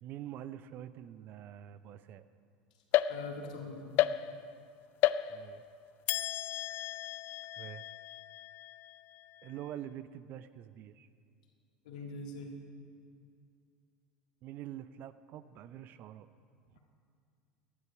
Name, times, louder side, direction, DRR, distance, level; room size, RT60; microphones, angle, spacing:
voice 1, 0.0-2.2 5.3-5.6 7.6-7.8 9.4-11.1 14.4-16.3, right 11 dB, 50° right, 14 dB, 0.6 m, -45 dB
sound 1, 2.9-3.6 4.0-4.6 5.0-5.7 6.1-9.5, left 13 dB, 50° left, 0.4 m, -33 dB
voice 2, 3.1-3.9 11.8-12.6, left 3 dB, 75° left, 1 dB, 2.0 m, -42 dB
18.5 x 11.0 x 4.7 m, 2.3 s
hypercardioid pair, 80°, 4 cm